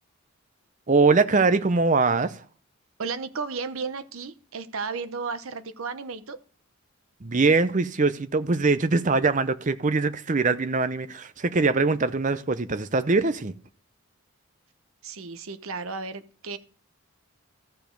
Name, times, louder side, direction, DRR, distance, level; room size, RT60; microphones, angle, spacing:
voice 1, 0.9-2.4 7.2-13.5, right 3 dB, 35° right, 0.6 m, -22 dB
voice 2, 3.0-6.4 15.0-16.6, right 4 dB, 70° right, 0.8 m, -34 dB
14.0 x 5.0 x 5.2 m
head